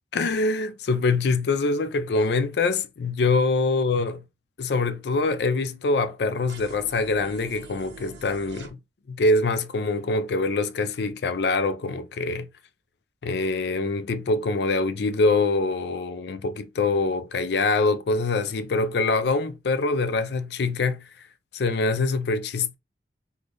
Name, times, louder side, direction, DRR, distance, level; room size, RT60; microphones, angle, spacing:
voice 1, 0.1-4.2 4.6-8.8 9.1-12.5 13.2-21.0 21.5-22.7, left 3 dB, 65° left, 0.4 m, -24 dB
sound 1, 6.5-8.7, right 3 dB, 75° right, 0.7 m, -44 dB
3.3 x 2.3 x 3.8 m
head